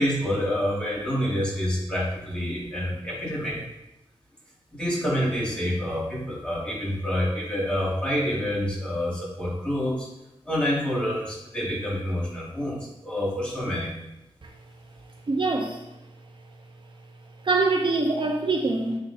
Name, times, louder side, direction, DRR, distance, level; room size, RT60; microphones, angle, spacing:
voice 1, 0.0-3.6 4.7-10.1 10.4-13.9, equal, 10° left, -6 dB, 2.5 m, -27 dB
voice 2, 15.3-15.8 17.4-19.0, right 3 dB, 55° right, 1 dB, 0.7 m, -24 dB
8.8 x 3.2 x 4.2 m, 0.94 s
wide cardioid pair, 70°, 10 cm